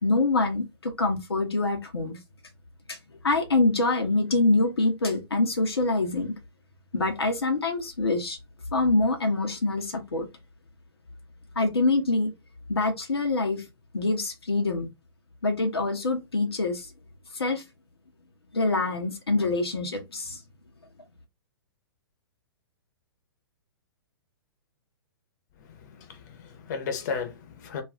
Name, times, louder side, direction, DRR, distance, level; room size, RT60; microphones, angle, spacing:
voice 1, 0.0-2.2 2.9-3.0 3.2-6.4 6.9-8.4 8.7-10.3 11.6-12.3 12.7-13.6 13.9-14.9 15.4-16.9 17.3-17.6 18.5-20.4, left 2 dB, 80° left, 0.6 m, -25 dB
voice 2, 25.7-27.8, left 5 dB, 45° left, 0.8 m, -34 dB
2.4 x 2.3 x 3.6 m
figure-of-eight pair, 115°, 13 cm